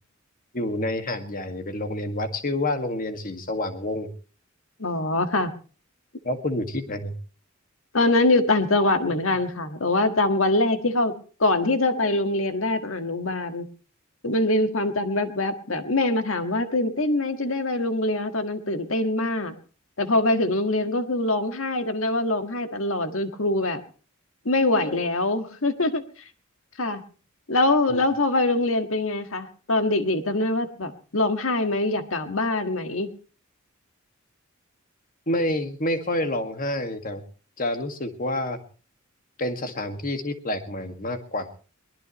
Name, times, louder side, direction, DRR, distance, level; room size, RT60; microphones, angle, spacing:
voice 1, 0.5-4.1 6.2-7.1 14.7-14.9 24.8-25.0 27.9-28.0 35.3-37.2 37.6-38.6 39.4-41.5, left 1 dB, 40° left, 7 dB, 2.0 m, -28 dB
voice 2, 4.8-5.5 7.9-11.1 11.4-13.7 14.2-19.5 20.0-23.8 24.5-26.0 26.8-27.0 27.5-33.1, left 2 dB, 70° left, 8 dB, 1.8 m, -23 dB
22.5 x 19.0 x 3.1 m, 0.39 s
head